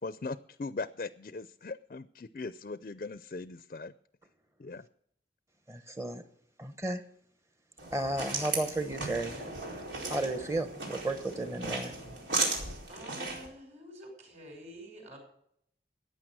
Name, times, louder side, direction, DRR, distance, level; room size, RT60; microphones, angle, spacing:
voice 1, 0.0-3.9 4.6-4.9, left 3 dB, 45° left, 14 dB, 0.4 m, -39 dB
voice 2, 5.7-6.2 6.6-7.0 7.9-9.5 10.1-11.9, right 2 dB, 15° right, 9 dB, 1.0 m, -33 dB
sound 1, 7.8-13.5, right 3 dB, 90° right, 4.5 m, -36 dB
voice 3, 12.9-15.2, equal, 40° right, 2 dB, 5.7 m, -48 dB
15.0 x 9.6 x 6.2 m, 0.70 s
head